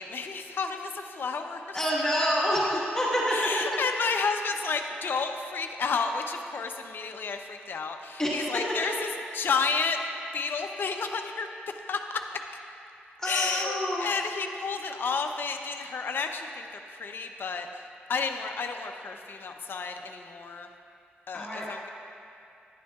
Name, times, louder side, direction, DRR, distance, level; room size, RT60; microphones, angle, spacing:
voice 1, 0.0-1.8 3.3-10.0 10.3-11.5 11.9-12.0 13.2-17.8 18.1-20.7 21.3-21.9, left 5 dB, 60° left, 5 dB, 0.6 m, -31 dB
voice 2, 1.7-3.4 8.2-8.5 13.2-14.1 21.3-21.7, equal, 15° left, -7 dB, 1.5 m, -27 dB
11.5 x 10.0 x 2.3 m, 2.6 s
wide cardioid pair, 105°, 4 cm